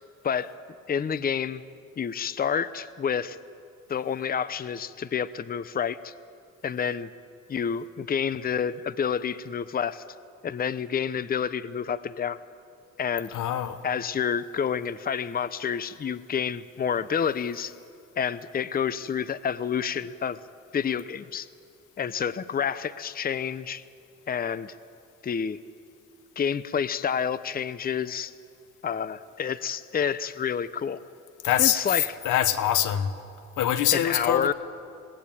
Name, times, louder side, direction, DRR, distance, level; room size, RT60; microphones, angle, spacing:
voice 1, 0.9-1.6 2.0-3.4 3.9-6.1 6.6-7.1 7.5-10.0 10.4-12.4 13.0-13.3 13.8-17.7 18.2-20.4 20.7-21.5 22.0-23.8 24.3-24.7 25.2-25.6 26.4-28.3 28.8-31.0 31.6-32.2 33.9-34.5, left 7 dB, 30° left, 16 dB, 0.7 m, -29 dB
voice 2, 13.3-13.8 31.4-31.8 32.2-33.1 33.6-34.5, left 11 dB, 85° left, 12 dB, 1.2 m, -24 dB
21.0 x 18.0 x 8.9 m, 2.5 s
cardioid pair, 90°, 30 cm